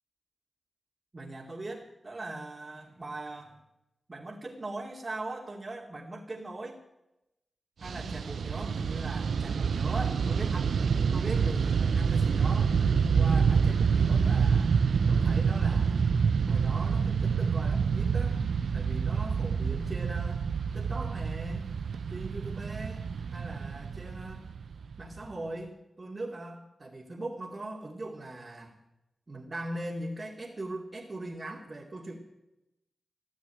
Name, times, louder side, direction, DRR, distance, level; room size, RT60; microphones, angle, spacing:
voice 1, 1.1-3.6 4.1-6.8 7.8-10.7 11.1-12.8 13.2-14.8 15.1-16.1 16.5-18.4 18.7-20.4 20.7-21.7 22.1-23.0 23.3-24.5 25.0-28.7 29.3-32.2, right 2 dB, 40° right, -2 dB, 2.5 m, -40 dB
Fixed-wing aircraft airplane, 7.8-25.3, right 6 dB, 85° right, 0.6 m, -27 dB
14.5 x 9.2 x 9.2 m, 0.91 s
cardioid pair, 50°, 0 cm